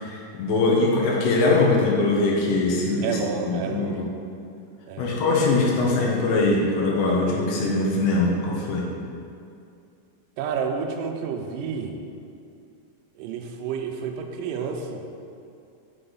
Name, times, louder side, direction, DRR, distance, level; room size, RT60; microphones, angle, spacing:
voice 1, 0.0-4.1 5.0-8.9, left 3 dB, 85° left, -2 dB, 3.1 m, -22 dB
voice 2, 3.0-4.1 4.9-5.2 10.4-12.0 13.2-15.0, right 6 dB, 85° right, 3 dB, 2.0 m, -30 dB
7.9 x 6.7 x 3.9 m, 2.4 s
omnidirectional pair, 4.5 m